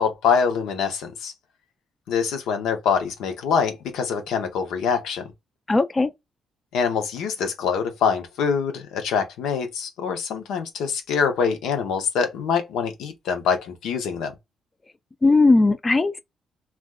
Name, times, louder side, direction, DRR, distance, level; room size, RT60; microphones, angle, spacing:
voice 1, 0.0-1.3 2.1-5.3 6.7-14.3, left 6 dB, 85° left, 0.7 m, -24 dB
voice 2, 5.7-6.1 15.2-16.2, left 3 dB, 25° left, 0.3 m, -18 dB
3.3 x 2.2 x 2.3 m
cardioid pair, 90°, 0 cm